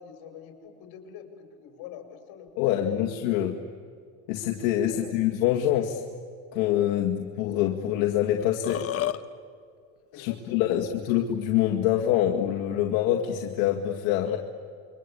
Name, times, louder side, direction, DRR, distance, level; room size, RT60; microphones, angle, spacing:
voice 1, 0.0-3.1 4.9-5.2 10.1-11.0, left 9 dB, 60° left, 5 dB, 5.8 m, -44 dB
voice 2, 2.6-3.5 4.3-6.0 6.5-8.9 10.1-14.4, left 11 dB, 75° left, 2 dB, 2.2 m, -25 dB
Burping eructation, 8.4-9.2, left 12 dB, 35° left, 1.2 m, -29 dB
28.5 x 24.0 x 8.6 m, 2.2 s
supercardioid pair, 125°, 42 cm